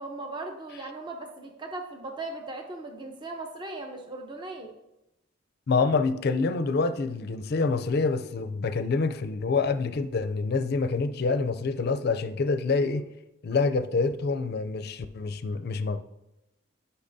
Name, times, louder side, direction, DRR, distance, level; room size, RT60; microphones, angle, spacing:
voice 1, 0.0-4.7, right 2 dB, 25° right, 0.7 m, -38 dB
voice 2, 5.7-13.1 13.4-16.0, left 4 dB, 50° left, 0.4 m, -26 dB
12.0 x 5.7 x 2.7 m
head